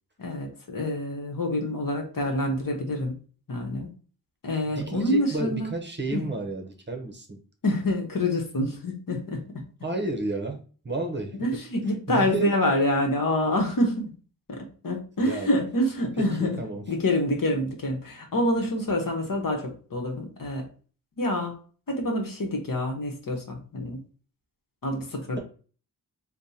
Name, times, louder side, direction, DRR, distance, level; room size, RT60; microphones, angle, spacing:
voice 1, 0.2-3.2 3.5-3.9 4.4-5.7 6.1-6.2 7.6-9.6 11.4-14.1 14.5-16.6 16.9-20.7 21.2-21.5 21.9-24.0 24.8-25.4, left 1 dB, 60° left, 1.0 m, -27 dB
voice 2, 4.6-7.4 9.8-11.4 12.1-12.6 15.2-15.5 16.2-16.8, right 2 dB, 30° right, 0.7 m, -32 dB
3.4 x 2.2 x 4.1 m
wide cardioid pair, 70°, 38 cm